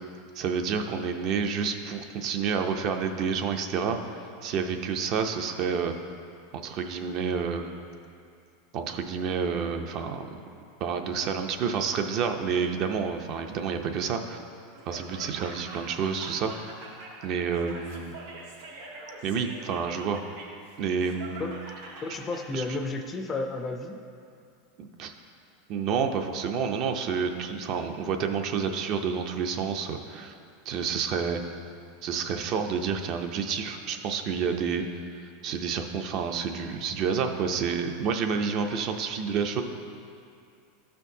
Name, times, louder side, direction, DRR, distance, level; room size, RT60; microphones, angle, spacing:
voice 1, 0.3-4.0 4.4-5.9 6.5-7.7 8.7-10.3 10.8-14.4 14.9-16.5 17.2-18.1 19.2-20.2 20.8-21.5 22.5-22.6 24.8-25.1 25.7-30.3 30.7-31.4 32.0-39.6, right 6 dB, 45° right, 6 dB, 0.5 m, -29 dB
Laughter, 14.7-22.4, right 2 dB, 80° right, 1.5 m, -44 dB
voice 2, 22.0-24.0, left 3 dB, 20° left, 5 dB, 0.4 m, -32 dB
12.5 x 4.4 x 2.7 m, 2.4 s
supercardioid pair, 145°, 0 cm